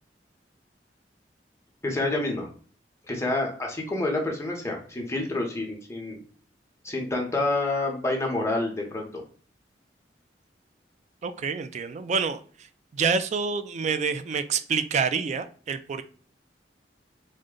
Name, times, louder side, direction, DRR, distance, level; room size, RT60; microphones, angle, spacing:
voice 1, 1.8-2.5 3.1-6.2 6.8-9.2, left 2 dB, 15° left, 0 dB, 0.8 m, -28 dB
voice 2, 11.2-12.4 12.9-16.0, right 5 dB, 40° right, 11 dB, 0.3 m, -27 dB
3.7 x 2.1 x 3.7 m, 0.44 s
head